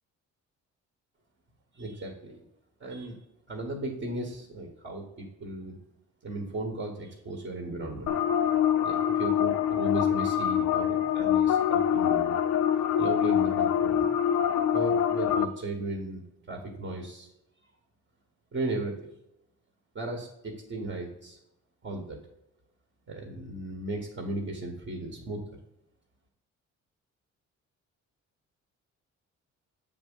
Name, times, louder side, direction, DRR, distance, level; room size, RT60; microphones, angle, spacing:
voice 1, 1.7-2.4 2.8-3.2 3.5-5.8 6.2-8.1 8.8-12.3 13.0-14.1 14.7-17.3 18.5-19.1 19.9-21.4 21.8-22.2 23.1-25.6, right 2 dB, 40° right, 1 dB, 1.4 m, -36 dB
sound 1, 8.1-15.5, left 9 dB, 65° left, 0.5 m, -25 dB
7.3 x 3.7 x 5.4 m, 0.85 s
cardioid pair, 90°, 30 cm